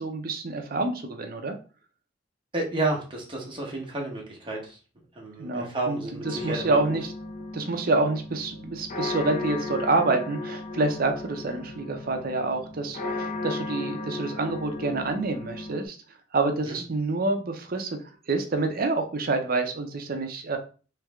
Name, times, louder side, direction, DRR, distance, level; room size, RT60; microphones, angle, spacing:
voice 1, 0.0-1.5 5.4-7.1 7.5-16.0 16.3-20.6, right 3 dB, 55° right, 6 dB, 0.6 m, -27 dB
voice 2, 2.5-4.6 5.2-6.8 16.7-16.8, right 2 dB, 30° right, -1 dB, 1.3 m, -31 dB
sound 1, 6.2-15.9, left 3 dB, 40° left, 0.5 m, -35 dB
3.3 x 3.2 x 3.5 m, 0.37 s
head